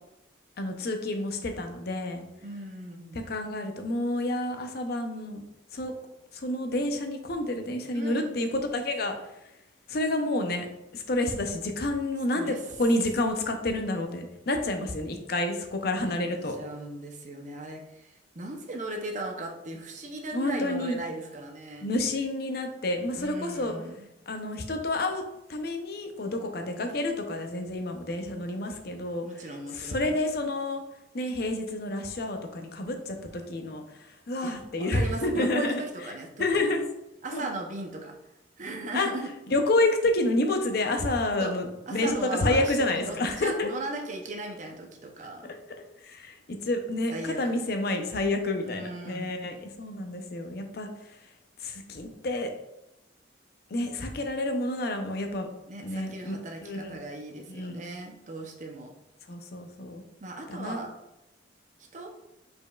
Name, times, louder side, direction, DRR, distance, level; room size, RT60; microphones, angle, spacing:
voice 1, 0.6-2.2 3.1-5.4 5.7-5.9 6.3-9.2 9.9-10.7 10.9-16.6 20.3-21.0 21.8-23.7 24.3-25.2 25.5-29.3 29.7-30.8 31.1-35.8 36.4-36.8 37.3-37.5 38.9-39.1 39.5-43.7 46.0-50.9 51.6-52.5 53.7-55.5 55.8-56.4 56.6-57.0 57.5-57.9 59.3-60.0 60.5-60.8, left 2 dB, 55° left, 5 dB, 0.6 m, -29 dB
voice 2, 2.4-3.3 7.9-8.4 12.3-12.6 16.0-16.2 16.6-21.9 23.1-24.0 29.2-30.2 34.4-36.7 37.2-39.3 41.4-41.5 41.9-45.5 47.1-47.5 48.6-49.4 55.7-58.9 60.2-60.9 61.9-62.1, right 2 dB, 40° right, 2 dB, 0.6 m, -38 dB
5.1 x 4.4 x 2.3 m, 0.88 s
head